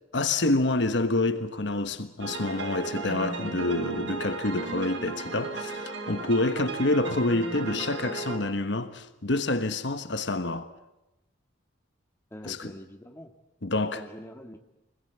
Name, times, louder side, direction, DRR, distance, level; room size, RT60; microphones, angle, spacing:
voice 1, 0.1-10.7 12.5-12.6 13.6-14.0, left 2 dB, 65° left, 1.3 m, -27 dB
sound 1, 2.2-8.4, right 3 dB, 70° right, 4.5 m, -35 dB
voice 2, 12.3-13.3 13.9-14.6, equal, 15° left, 1.8 m, -44 dB
25.5 x 20.5 x 8.1 m
head